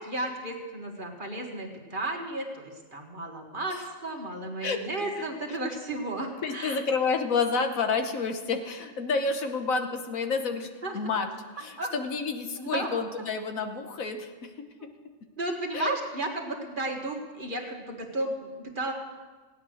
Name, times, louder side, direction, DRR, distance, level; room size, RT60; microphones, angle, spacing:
voice 1, 0.0-6.8 10.8-11.0 11.8-11.9 12.6-12.9 14.8-14.9 15.4-18.9, right 2 dB, 35° right, 1 dB, 1.8 m, -33 dB
voice 2, 4.6-5.2 6.4-10.7 10.9-11.3 11.6-14.7 15.7-16.0, left 4 dB, 70° left, 6 dB, 1.4 m, -29 dB
16.0 x 9.6 x 6.4 m, 1.3 s
omnidirectional pair, 1.5 m